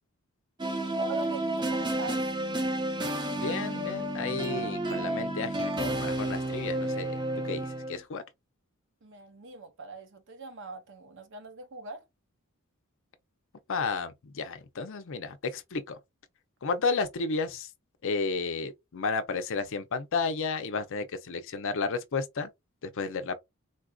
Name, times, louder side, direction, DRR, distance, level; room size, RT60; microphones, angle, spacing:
sound 1, 0.6-8.0, right 1 dB, 20° right, 0.6 m, -31 dB
voice 1, 0.9-2.2 9.0-12.1, right 4 dB, 55° right, 0.7 m, -42 dB
voice 2, 3.4-7.2 7.4-8.2 13.7-16.0 16.6-17.7 18.0-22.5 22.8-23.4, left 4 dB, 60° left, 0.5 m, -32 dB
3.8 x 2.5 x 2.3 m
head